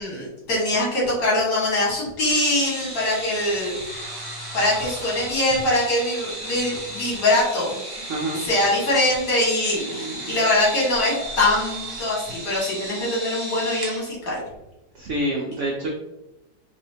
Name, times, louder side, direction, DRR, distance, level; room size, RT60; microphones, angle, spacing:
voice 1, 0.0-3.8 4.5-7.9 8.4-14.4, left 1 dB, 65° left, -5 dB, 2.0 m, -23 dB
sound 1, 2.3-14.0, right 1 dB, 40° right, 0.3 m, -35 dB
voice 2, 8.1-8.4 9.9-10.4 14.9-15.9, right 1 dB, 85° right, -1 dB, 0.6 m, -27 dB
4.3 x 2.7 x 2.7 m, 0.94 s
omnidirectional pair, 1.9 m